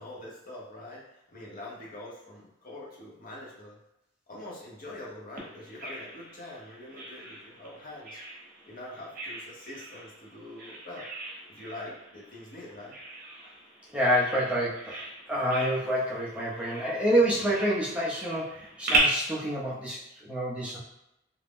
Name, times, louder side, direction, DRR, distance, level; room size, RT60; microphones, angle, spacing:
voice 1, 0.0-3.8 4.3-8.2 8.7-11.1 11.5-12.9, left 1 dB, 45° left, -5 dB, 0.8 m, -44 dB
Bird vocalization bird call bird song, 5.4-19.0, right 3 dB, 45° right, 0.7 m, -38 dB
voice 2, 13.9-20.8, equal, 5° right, -7 dB, 0.5 m, -28 dB
2.4 x 2.0 x 3.5 m, 0.86 s
head